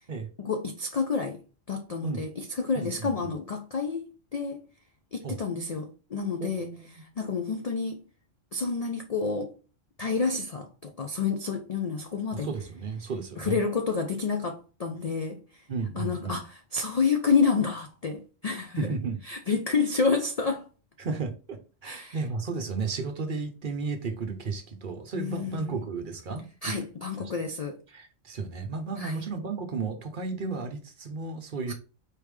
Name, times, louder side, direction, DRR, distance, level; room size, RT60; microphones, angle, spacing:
voice 1, 0.4-1.4 1.7-4.6 5.1-8.0 8.5-9.5 10.0-12.5 13.4-15.7 16.0-18.9 19.2-20.7 21.8-22.2 25.1-25.8 26.6-27.8 29.0-29.2 31.7-31.8, left 5 dB, 85° left, 0.3 m, -29 dB
voice 2, 2.8-3.3 5.2-5.4 6.4-6.9 12.3-13.6 15.7-16.4 18.8-19.2 21.0-26.7 27.2-27.3 27.9-31.7, right 4 dB, 50° right, 0.7 m, -33 dB
4.6 x 3.5 x 3.2 m
omnidirectional pair, 1.3 m